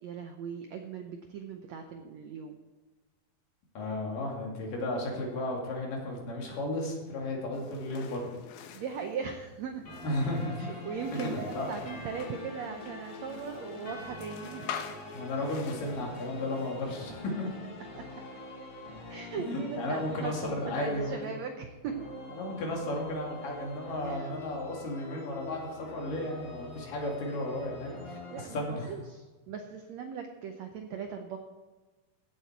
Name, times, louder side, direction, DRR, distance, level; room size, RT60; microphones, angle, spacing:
voice 1, 0.0-2.6 8.7-9.9 10.6-14.7 17.9-18.2 19.1-22.1 24.0-24.3 28.3-31.4, right 6 dB, 80° right, 5 dB, 1.5 m, -39 dB
voice 2, 3.8-8.3 10.0-10.7 11.1-11.7 15.1-17.5 19.4-21.2 22.3-28.9, left 1 dB, 65° left, -1 dB, 3.9 m, -34 dB
sound 1, 7.5-17.0, left 8 dB, 85° left, 2.8 m, -46 dB
sound 2, 9.9-28.5, left 2 dB, 50° left, 3.6 m, -44 dB
16.0 x 7.8 x 4.6 m, 1.2 s
omnidirectional pair, 4.2 m